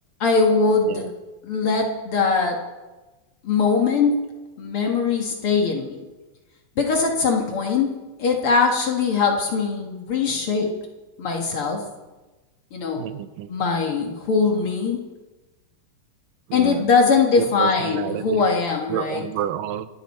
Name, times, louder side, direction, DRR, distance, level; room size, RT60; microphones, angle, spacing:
voice 1, 0.2-1.0 1.4-2.6 3.4-4.3 4.6-6.0 6.8-10.7 11.2-11.8 12.7-13.1 13.5-15.0 16.5-19.2, left 4 dB, 50° left, 2 dB, 1.9 m, -21 dB
voice 2, 13.0-13.5 16.5-16.9 17.3-18.5 18.9-19.9, right 10 dB, 85° right, 12 dB, 2.4 m, -29 dB
26.5 x 10.5 x 4.3 m, 1.2 s
omnidirectional pair, 3.8 m